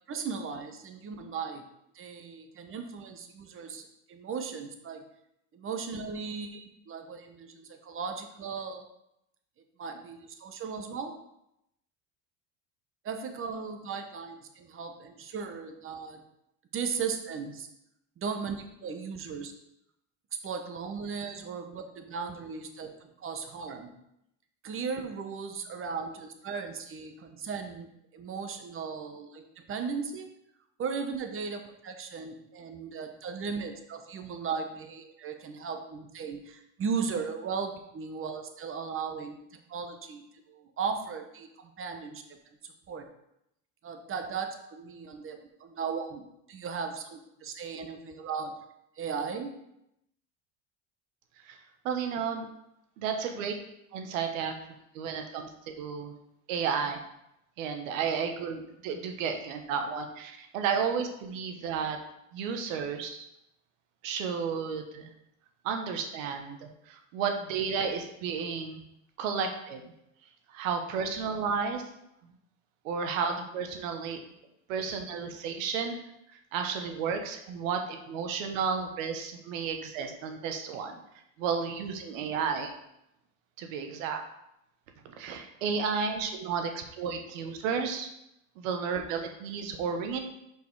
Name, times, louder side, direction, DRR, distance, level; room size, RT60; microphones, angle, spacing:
voice 1, 0.1-1.6 1.9-5.0 5.5-8.8 9.8-11.1 13.0-16.2 16.7-17.7 18.2-19.5 20.4-22.9 23.2-23.9 24.6-30.3 30.8-39.4 39.7-42.4 42.9-43.1 43.8-48.5 49.0-49.5, right 5 dB, 35° right, 6 dB, 1.0 m, -37 dB
voice 2, 51.8-52.5 53.0-53.5 53.9-54.5 54.9-55.5 55.8-56.1 56.5-57.0 57.6-62.0 62.3-63.3 64.0-65.1 65.6-68.8 69.2-69.8 70.5-71.8 72.8-74.2 74.7-76.0 76.5-81.0 81.4-82.7 83.6-84.2 85.0-88.1 88.6-90.2, right 6 dB, 85° right, 5 dB, 1.1 m, -32 dB
5.3 x 4.6 x 4.6 m, 0.82 s
supercardioid pair, 105°, 38 cm